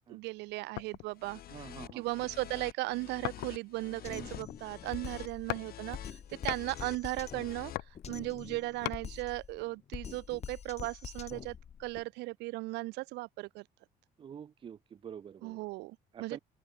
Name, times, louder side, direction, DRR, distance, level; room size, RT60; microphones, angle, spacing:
voice 1, 0.1-1.4 1.9-7.7 8.1-13.6 15.4-16.4, right 21 dB, 90° right, 0.8 m, -37 dB
sound 1, 0.8-1.2 1.8-2.5 3.2-3.8 4.2-4.9 5.5-5.7 6.0-6.7 7.5-9.0 9.6-9.7, left 21 dB, 85° left, 0.5 m, -40 dB
sound 2, 1.1-7.8, left 12 dB, 60° left, 2.2 m, -48 dB
voice 2, 1.5-2.1 4.1-4.3 14.2-15.6 16.1-16.4, right 8 dB, 30° right, 0.5 m, -47 dB
Drum kit, 4.0-12.0, left 8 dB, 40° left, 1.4 m, -46 dB
open air
cardioid pair, 110°, 17 cm